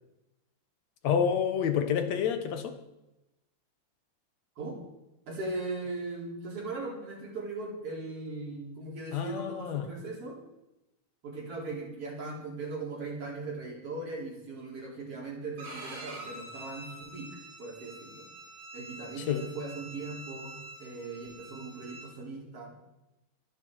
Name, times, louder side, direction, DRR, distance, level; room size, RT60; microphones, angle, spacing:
voice 1, 1.0-2.8 9.1-9.9 19.2-19.4, left 8 dB, 60° left, 8 dB, 2.4 m, -28 dB
voice 2, 5.3-10.4 11.2-17.3 17.6-18.2 18.7-22.7, right 3 dB, 45° right, -2 dB, 4.8 m, -39 dB
Bowed string instrument, 15.6-22.1, right 2 dB, 60° right, 5.6 m, -46 dB
23.0 x 10.5 x 4.7 m, 0.93 s
omnidirectional pair, 3.7 m